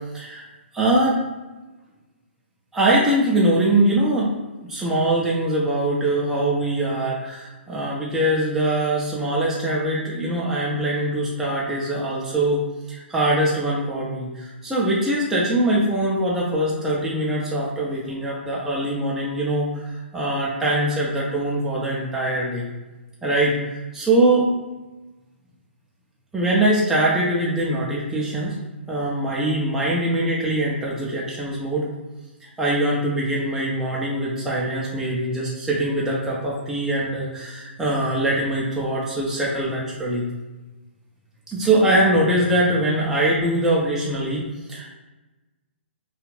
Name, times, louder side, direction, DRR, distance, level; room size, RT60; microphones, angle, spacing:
voice 1, 0.1-0.5 0.7-1.2 2.7-22.7 23.2-24.4 26.3-28.6 28.9-31.9 32.4-40.2 41.5-44.9, right 1 dB, 5° right, -6 dB, 0.4 m, -22 dB
2.4 x 2.4 x 3.1 m, 1.1 s
figure-of-eight pair, 130°, 6 cm